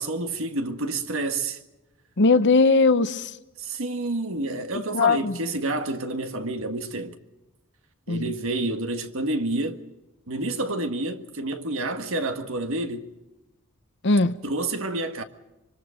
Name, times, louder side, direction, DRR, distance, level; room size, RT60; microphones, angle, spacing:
voice 1, 0.0-1.6 3.6-7.2 8.1-9.8 10.3-13.1 14.4-15.2, right 2 dB, 65° right, 1.7 m, -29 dB
voice 2, 2.2-3.3 4.9-5.3 8.1-8.3 14.0-14.3, left 3 dB, 55° left, 0.9 m, -19 dB
25.0 x 24.5 x 5.1 m
head